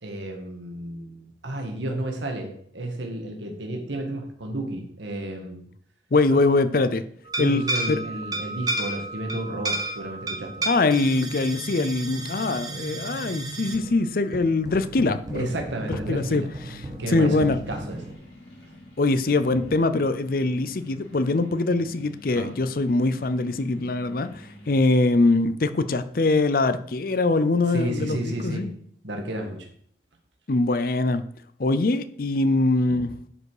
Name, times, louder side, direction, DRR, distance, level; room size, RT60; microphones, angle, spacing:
voice 1, 0.0-5.7 6.3-6.4 7.4-10.7 15.3-16.5 17.0-18.1 19.5-19.6 22.3-22.5 27.7-28.7 29.0-29.7 32.9-33.1, right 1 dB, 90° right, 3 dB, 1.7 m, -32 dB
voice 2, 6.1-7.0 7.4-7.6 7.9-8.0 10.7-15.5 15.9-16.8 17.1-17.6 19.0-28.7 30.5-31.2 31.6-33.1, left 2 dB, 50° left, 12 dB, 0.5 m, -23 dB
sound 1, 7.2-18.1, right 2 dB, 20° right, 1.3 m, -33 dB
sound 2, 17.9-24.9, left 1 dB, 85° left, 4.4 m, -48 dB
11.0 x 5.0 x 4.9 m, 0.63 s
head